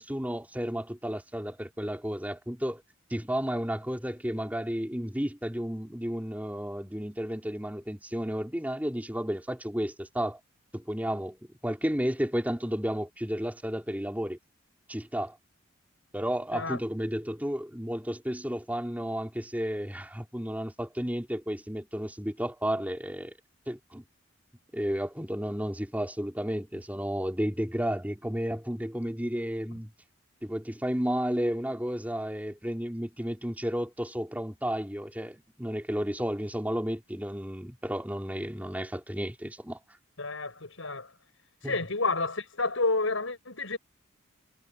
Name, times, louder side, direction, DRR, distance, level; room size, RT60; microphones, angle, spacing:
voice 1, 0.0-2.8 3.1-10.4 10.7-14.4 14.9-15.4 16.1-23.3 23.7-24.0 24.7-29.9 30.4-39.8 41.6-41.8, equal, 10° right, 3.6 m, -32 dB
voice 2, 40.2-41.1 41.6-43.8, left 3 dB, 75° left, 5.4 m, -30 dB
head